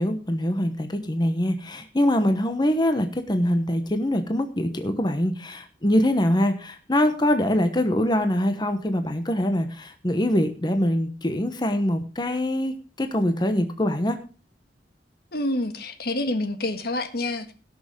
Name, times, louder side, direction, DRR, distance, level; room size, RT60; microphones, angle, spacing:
voice 1, 0.0-14.2, left 1 dB, 25° left, 7 dB, 1.1 m, -24 dB
voice 2, 15.3-17.5, left 1 dB, 60° left, 9 dB, 1.6 m, -27 dB
17.5 x 6.6 x 5.3 m, 0.36 s
head